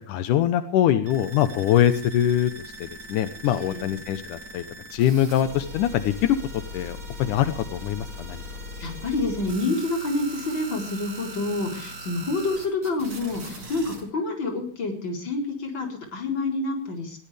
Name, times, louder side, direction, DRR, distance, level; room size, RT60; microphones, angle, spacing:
voice 1, 0.1-2.5 2.8-4.6 4.9-8.4, left 11 dB, 85° left, 11 dB, 2.5 m, -23 dB
sound 1, 1.0-14.0, equal, 60° right, 6.2 m, -40 dB
voice 2, 3.4-3.9 8.8-17.2, left 2 dB, 35° left, 2 dB, 4.8 m, -28 dB
21.0 x 17.0 x 3.4 m, 0.42 s
omnidirectional pair, 3.5 m